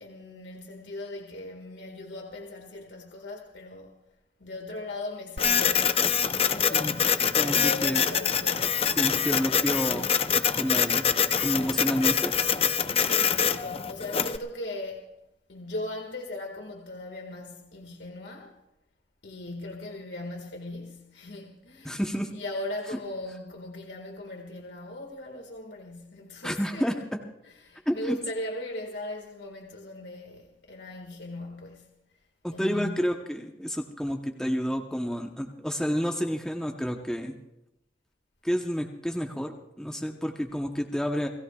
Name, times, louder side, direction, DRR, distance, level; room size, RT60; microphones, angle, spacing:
voice 1, 0.0-3.9 4.4-9.0 12.9-15.0 15.5-18.6 19.2-22.0 22.3-26.9 27.6-31.9 32.5-33.1, left 1 dB, 80° left, 1.8 m, -39 dB
Printer, 5.4-14.4, left 7 dB, 35° left, 0.6 m, -25 dB
voice 2, 7.3-8.0 9.0-11.1 11.4-12.3 21.8-22.3 26.4-26.9 27.9-28.2 32.4-37.4 38.4-41.3, equal, 5° left, 0.9 m, -30 dB
29.5 x 17.5 x 2.4 m
head